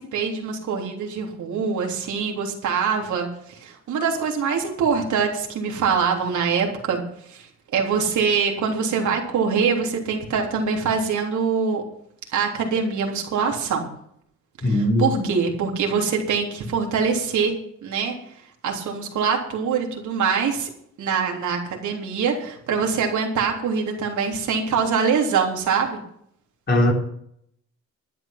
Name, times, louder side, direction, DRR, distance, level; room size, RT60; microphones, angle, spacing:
voice 1, 0.1-7.0 7.3-7.5 7.7-11.8 12.3-13.9 14.6-17.5 17.8-18.2 18.6-20.7 21.0-26.0, right 6 dB, 75° right, 3.5 m, -24 dB
voice 2, 14.6-15.1 26.7-26.9, left 1 dB, 35° left, 3.6 m, -19 dB
12.5 x 10.0 x 6.0 m
cardioid pair, 90°, 30 cm